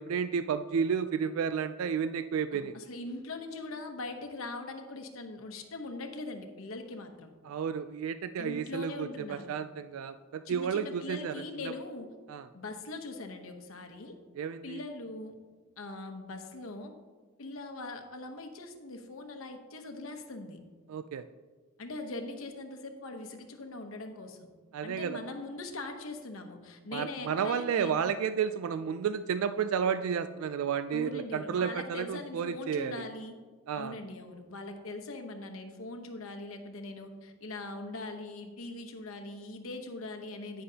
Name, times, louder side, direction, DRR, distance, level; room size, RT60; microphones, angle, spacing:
voice 1, 0.0-2.8 7.4-11.3 12.3-12.5 14.4-14.8 20.9-21.2 24.7-25.2 26.9-33.1 33.7-34.0, right 7 dB, 85° right, 11 dB, 0.3 m, -32 dB
voice 2, 2.5-7.3 8.4-9.5 10.4-12.1 12.5-14.2 14.6-15.3 15.8-16.9 17.4-20.6 21.8-24.5 24.8-28.0 30.9-33.4 33.7-40.6, left 2 dB, 80° left, 5 dB, 1.0 m, -41 dB
10.0 x 9.6 x 2.8 m, 1.4 s
head